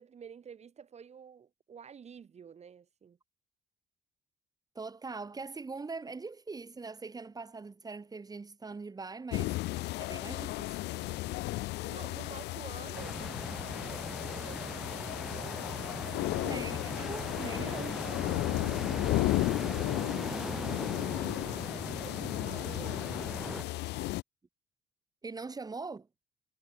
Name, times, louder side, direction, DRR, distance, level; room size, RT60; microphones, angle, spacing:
voice 1, 0.0-3.2 11.8-16.5 21.3-23.9, right 7 dB, 40° right, 7.7 m, -51 dB
voice 2, 4.7-9.6 10.0-10.8 11.0-11.6 16.4-18.0 25.2-26.1, right 4 dB, 20° right, 4.0 m, -42 dB
sound 1, 9.3-24.2, left 19 dB, 85° left, 1.5 m, -34 dB
sound 2, 12.9-23.6, equal, ahead, 1.4 m, -40 dB
cardioid pair, 110°, 17 cm